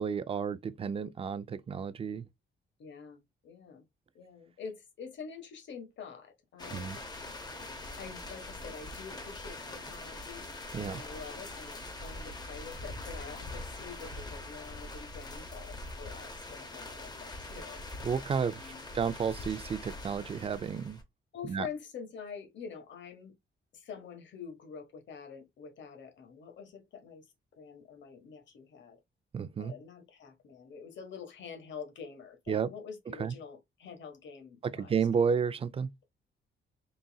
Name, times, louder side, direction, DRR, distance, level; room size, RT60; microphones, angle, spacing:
voice 1, 0.0-2.2 6.7-7.0 10.7-11.0 18.0-21.0 21.5-21.6 29.3-29.7 32.5-32.7 33.2-33.3 34.8-35.9, right 6 dB, 30° right, 0.4 m, -32 dB
voice 2, 2.8-3.8 4.1-6.9 8.0-17.8 18.5-18.9 21.3-23.3 23.7-29.0 29.6-35.4, left 6 dB, 65° left, 1.4 m, -46 dB
sound 1, 6.6-21.0, left 2 dB, 20° left, 0.8 m, -43 dB
4.0 x 3.8 x 2.3 m
wide cardioid pair, 170°, 20 cm